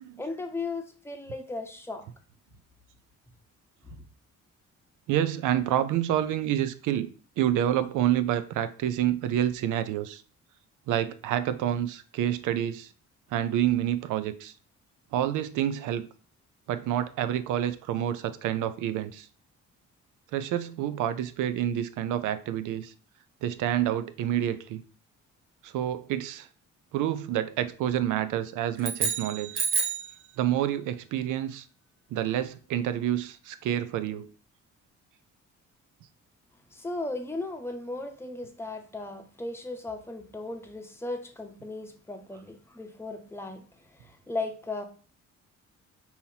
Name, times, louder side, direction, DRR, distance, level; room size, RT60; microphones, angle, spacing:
voice 1, 0.2-2.1 36.7-43.6 43.9-44.8, left 2 dB, 10° left, 0.7 m, -36 dB
voice 2, 5.1-7.1 7.4-10.2 10.9-12.9 13.3-14.5 15.1-16.1 16.7-19.3 20.3-22.9 23.4-24.8 25.6-26.5 26.9-29.7 30.4-31.7 32.1-34.3, right 11 dB, 85° right, 0.5 m, -28 dB
sound 1, 28.8-30.1, right 5 dB, 40° right, 0.9 m, -29 dB
5.5 x 2.8 x 2.8 m
cardioid pair, 90°, 30 cm